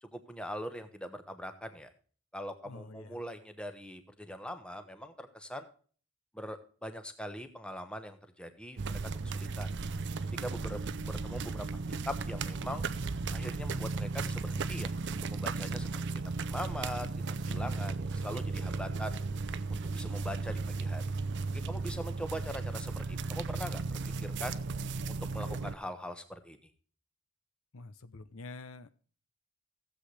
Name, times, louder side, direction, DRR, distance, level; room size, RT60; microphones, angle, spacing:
voice 1, 0.0-1.9 2.3-5.7 6.3-9.7 10.4-11.7 12.1-12.8 13.3-15.9 16.4-17.1 17.4-19.1 19.7-21.0 21.5-24.5 25.1-26.6, equal, 5° left, 8 dB, 1.0 m, -42 dB
voice 2, 2.6-3.2 17.5-17.9 27.7-28.9, left 3 dB, 60° left, 13 dB, 0.6 m, -47 dB
sound 1, 8.8-25.7, right 3 dB, 50° right, 0.6 m, -35 dB
15.5 x 7.8 x 3.3 m, 0.42 s
head